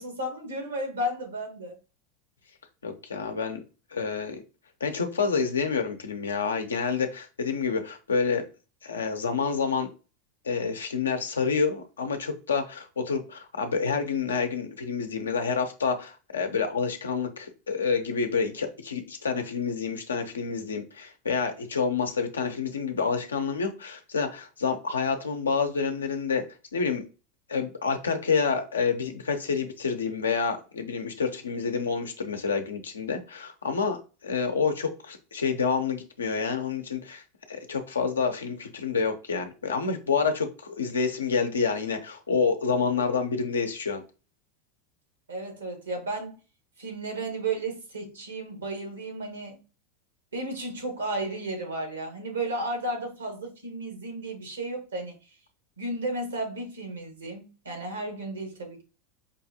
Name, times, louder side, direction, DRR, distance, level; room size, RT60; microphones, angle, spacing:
voice 1, 0.0-1.8 45.3-46.3 46.8-49.6 50.3-55.1 55.8-58.8, right 1 dB, 90° right, 1.4 m, -33 dB
voice 2, 2.8-3.6 3.9-4.4 4.8-8.4 8.8-9.9 10.4-26.4 26.7-27.1 27.5-37.2 37.5-44.0, left 5 dB, 90° left, 0.7 m, -28 dB
5.2 x 2.5 x 2.7 m
hypercardioid pair, 90°, 0 cm